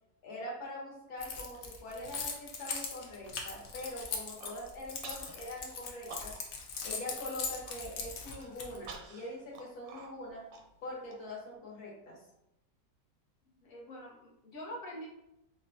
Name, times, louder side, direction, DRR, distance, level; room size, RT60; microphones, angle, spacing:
voice 1, 0.2-6.3 6.8-10.4 10.8-12.2, left 1 dB, 60° left, -4 dB, 1.5 m, -43 dB
Keys jangling, 1.2-8.9, left 5 dB, 80° left, 0.6 m, -40 dB
Human voice, 4.2-4.6 5.0-5.3 5.7-6.6 6.9-7.0 7.4-7.7 8.3-11.1, right 4 dB, 70° right, 0.9 m, -48 dB
voice 2, 13.6-15.1, equal, 45° left, -4 dB, 0.8 m, -45 dB
4.8 x 2.2 x 2.6 m, 0.87 s
omnidirectional pair, 1.9 m